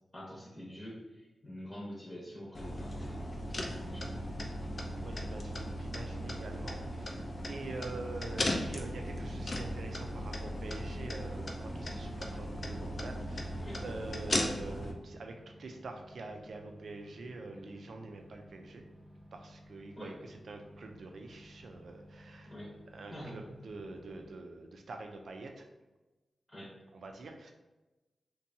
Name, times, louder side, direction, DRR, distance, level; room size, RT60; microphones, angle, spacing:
voice 1, 0.1-3.3 3.6-4.3 13.6-13.8 20.0-20.1 22.5-22.7 23.1-23.3 26.5-26.7, equal, 25° left, -6 dB, 0.8 m, -46 dB
sound 1, 2.5-14.9, left 1 dB, 45° left, 0.4 m, -37 dB
voice 2, 5.0-18.8 19.3-22.5 22.9-25.7 26.9-27.5, right 3 dB, 75° right, 4 dB, 0.4 m, -45 dB
sound 2, 9.5-24.3, equal, 5° right, 0.7 m, -55 dB
2.7 x 2.2 x 2.6 m, 1.1 s
cardioid pair, 55°, 0 cm